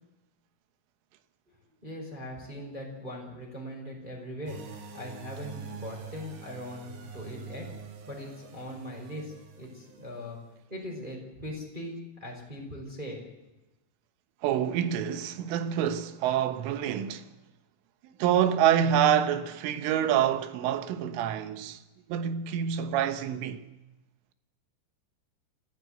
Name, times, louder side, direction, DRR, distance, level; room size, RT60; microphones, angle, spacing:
voice 1, 1.8-4.6 4.9-7.7 8.1-10.4 10.7-13.2, left 1 dB, 10° right, 4.7 m, -40 dB
sound 1, 4.5-10.4, right 5 dB, 65° right, 4.5 m, -45 dB
voice 2, 14.4-17.3 18.2-21.8 22.1-23.6, right 9 dB, 90° right, 3.7 m, -26 dB
26.5 x 15.0 x 7.9 m
omnidirectional pair, 5.5 m